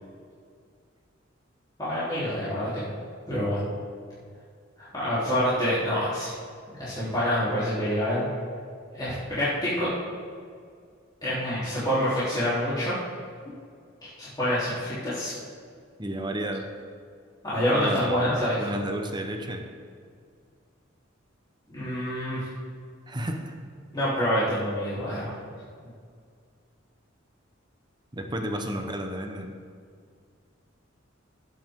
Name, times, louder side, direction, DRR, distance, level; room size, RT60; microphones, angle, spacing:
voice 1, 1.8-2.9 3.3-3.6 4.8-6.3 6.8-8.3 8.9-9.9 11.2-12.9 14.2-15.3 17.4-18.7 21.7-22.5 23.9-25.3, equal, 20° left, -13 dB, 3.7 m, -27 dB
voice 2, 16.0-16.7 17.7-19.7 23.1-23.6 28.1-29.5, right 1 dB, 20° right, 4 dB, 1.1 m, -32 dB
18.5 x 8.1 x 3.8 m, 2.1 s
head